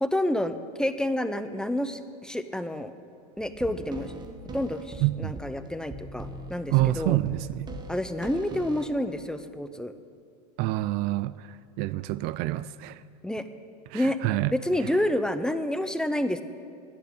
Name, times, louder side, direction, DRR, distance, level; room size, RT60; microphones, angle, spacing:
voice 1, 0.0-2.9 3.4-4.1 4.5-7.2 7.9-9.9 13.2-13.5 13.9-14.2 14.5-16.4, left 1 dB, 5° left, 10 dB, 0.6 m, -29 dB
sound 1, 3.4-9.0, right 1 dB, 20° right, 1.2 m, -41 dB
voice 2, 5.0-5.3 6.7-7.7 10.6-11.5 11.8-13.0 13.9-14.5, right 17 dB, 50° right, 17 dB, 0.4 m, -27 dB
10.5 x 8.7 x 9.9 m, 2.4 s
supercardioid pair, 115°, 20 cm